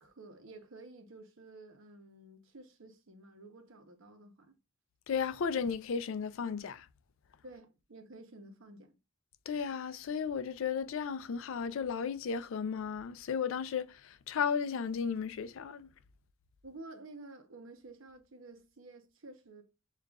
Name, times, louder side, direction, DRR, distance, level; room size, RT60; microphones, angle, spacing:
voice 1, 0.0-4.5 7.4-8.9 16.6-19.6, right 2 dB, 70° right, 0.8 m, -52 dB
voice 2, 5.1-6.9 9.5-15.9, left 6 dB, 65° left, 0.4 m, -34 dB
6.5 x 2.4 x 2.3 m
head